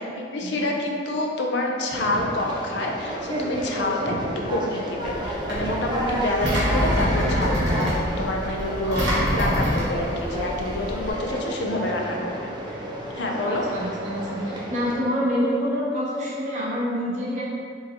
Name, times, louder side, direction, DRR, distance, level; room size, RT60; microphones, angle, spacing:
voice 1, 0.1-4.1 4.5-12.3 13.1-13.6, left 1 dB, 70° left, 0 dB, 0.4 m, -27 dB
Conversation, 1.9-15.0, right 1 dB, 25° right, 0.4 m, -31 dB
Engine, 5.0-11.1, equal, 75° right, 1.0 m, -26 dB
voice 2, 13.5-17.4, equal, 40° right, -7 dB, 0.7 m, -27 dB
3.8 x 2.6 x 2.9 m, 2.3 s
head